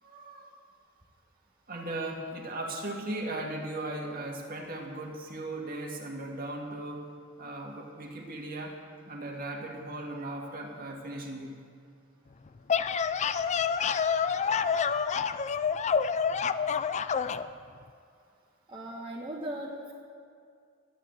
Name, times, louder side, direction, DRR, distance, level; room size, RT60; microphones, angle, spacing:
voice 1, 0.0-0.5 1.7-7.1 7.4-8.8 9.1-11.7, right 2 dB, 45° right, 0 dB, 2.0 m, -37 dB
sound 1, 12.5-17.5, left 6 dB, 35° left, 0.4 m, -28 dB
voice 2, 18.7-19.9, right 1 dB, 25° right, -4 dB, 1.3 m, -38 dB
13.5 x 9.1 x 9.0 m, 2.3 s
head